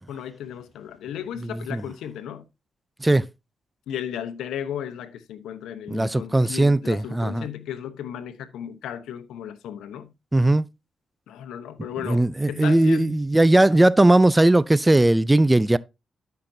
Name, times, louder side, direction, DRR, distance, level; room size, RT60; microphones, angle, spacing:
voice 1, 0.1-2.5 3.9-10.1 11.3-12.2 12.5-13.2 13.7-13.9, left 9 dB, 90° left, 0.9 m, -35 dB
voice 2, 5.9-7.5 10.3-10.7 12.0-15.8, right 1 dB, 15° right, 0.4 m, -18 dB
13.0 x 5.8 x 2.7 m
cardioid pair, 65°, 0 cm